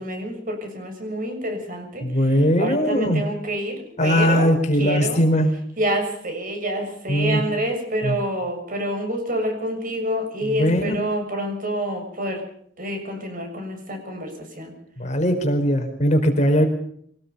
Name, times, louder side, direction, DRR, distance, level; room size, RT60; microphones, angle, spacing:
voice 1, 0.0-2.1 2.6-4.5 4.8-5.2 5.8-12.4 12.8-14.7, right 1 dB, 50° right, 5 dB, 6.8 m, -27 dB
voice 2, 2.0-3.2 4.0-5.5 7.1-7.4 8.0-8.2 10.4-10.9 15.0-16.7, equal, 40° left, 5 dB, 4.4 m, -20 dB
25.0 x 19.0 x 5.5 m, 0.65 s
head